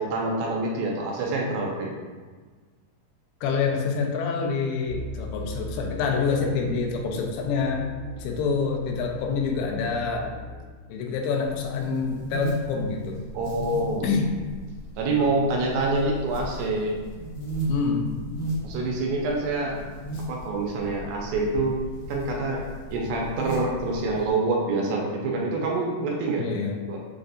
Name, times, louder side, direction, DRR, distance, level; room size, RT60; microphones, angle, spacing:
voice 1, 0.0-1.9 13.3-14.1 15.0-16.9 18.6-19.8 20.3-21.8 22.1-22.7 22.9-26.5 26.9-27.0, right 2 dB, 80° right, -1 dB, 2.3 m, -26 dB
voice 2, 3.4-7.9 8.2-10.3 10.9-13.2 14.0-14.3 17.7-18.1 26.4-26.8, left 5 dB, 90° left, 1 dB, 2.5 m, -26 dB
sound 1, 4.8-10.6, left 1 dB, 50° left, 1.5 m, -39 dB
sound 2, 11.4-24.3, equal, 70° left, 1.9 m, -36 dB
6.5 x 2.5 x 2.5 m, 1.4 s
omnidirectional pair, 4.4 m